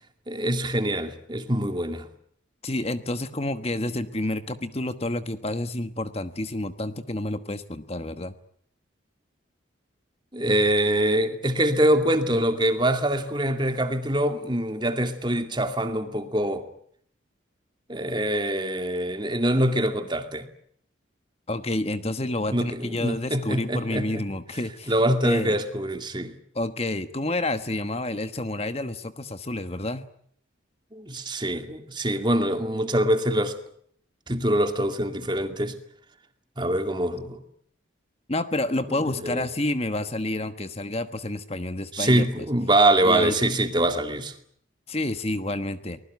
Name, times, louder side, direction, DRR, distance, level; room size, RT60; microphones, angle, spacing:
voice 1, 0.3-2.0 10.3-16.6 17.9-20.5 22.5-24.2 24.9-26.3 30.9-33.6 34.3-35.7 36.6-37.4 39.2-39.4 41.9-44.3, right 1 dB, 25° right, 2.4 m, -24 dB
voice 2, 2.6-8.3 21.5-24.9 25.2-25.6 26.5-30.0 38.3-42.5 43.0-43.4 44.9-46.0, left 1 dB, 30° left, 1.2 m, -29 dB
24.0 x 20.5 x 9.4 m
head